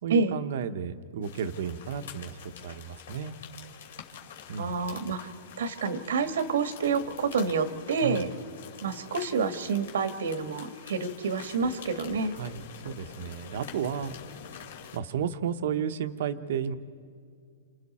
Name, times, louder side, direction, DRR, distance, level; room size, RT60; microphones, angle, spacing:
voice 1, 0.0-2.4 2.6-3.4 4.5-4.8 8.0-8.3 12.3-14.1 14.9-16.7, right 8 dB, 50° right, 10 dB, 0.9 m, -33 dB
sound 1, 1.2-15.0, left 8 dB, 65° left, 2.6 m, -46 dB
voice 2, 4.6-5.3 5.6-8.3 8.8-12.3, right 5 dB, 80° right, 9 dB, 1.4 m, -28 dB
28.5 x 27.0 x 4.3 m, 2.3 s
supercardioid pair, 180°, 0 cm